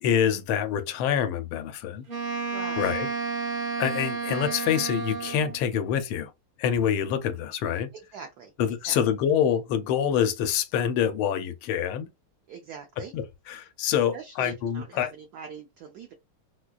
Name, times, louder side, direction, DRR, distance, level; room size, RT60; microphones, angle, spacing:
voice 1, 0.0-2.0 2.8-3.1 3.8-6.3 6.6-7.9 8.6-12.1 13.1-15.1, left 9 dB, 80° left, 1.4 m, -26 dB
Wind instrument woodwind instrument, 2.1-5.6, right 4 dB, 40° right, 0.8 m, -31 dB
voice 2, 2.5-2.9 7.9-8.5 8.8-9.0 12.5-13.1 14.1-16.1, right 6 dB, 85° right, 0.8 m, -42 dB
4.4 x 2.3 x 2.3 m
omnidirectional pair, 2.3 m